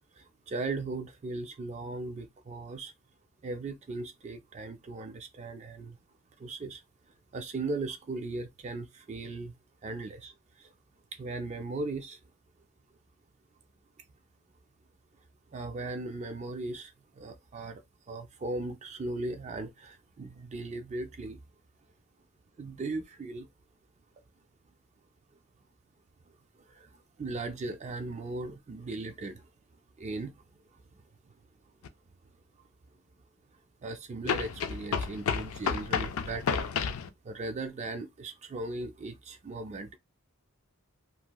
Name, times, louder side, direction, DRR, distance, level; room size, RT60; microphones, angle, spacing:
voice 1, 0.5-2.9 3.4-6.0 6.4-6.8 7.3-9.5 9.8-10.3 11.2-12.2 15.5-16.9 17.2-17.8 18.1-21.4 22.6-23.5 27.2-29.4 30.0-30.3 33.8-36.6 37.3-40.0, right 2 dB, 30° right, 0.3 m, -37 dB
sound 1, 31.8-31.9 34.3-37.1, left 6 dB, 70° left, 0.4 m, -31 dB
2.9 x 2.5 x 2.2 m
head